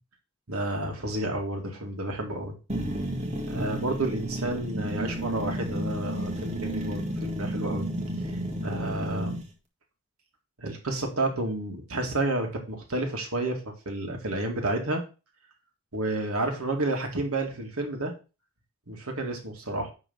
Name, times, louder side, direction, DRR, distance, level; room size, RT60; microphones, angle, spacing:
voice 1, 0.5-2.5 3.5-7.9 8.2-8.3 8.6-9.4 10.6-15.0 15.9-18.1 18.9-19.9, right 2 dB, 80° right, 3 dB, 2.2 m, -30 dB
sound 1, 2.7-9.5, right 1 dB, 30° right, 1.7 m, -32 dB
10.0 x 3.7 x 5.6 m, 0.32 s
head